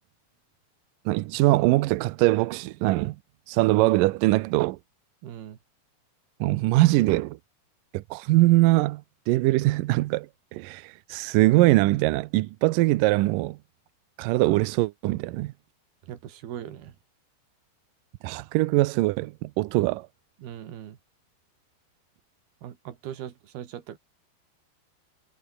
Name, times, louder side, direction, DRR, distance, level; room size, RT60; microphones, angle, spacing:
voice 1, 1.1-3.2 3.5-4.8 6.4-7.4 7.9-13.6 14.2-15.5 18.2-20.1, right 19 dB, 90° right, 1.9 m, -22 dB
voice 2, 5.2-5.6 16.0-16.9 20.4-21.0 22.6-24.0, right 10 dB, 70° right, 4.0 m, -39 dB
omnidirectional pair, 4.8 m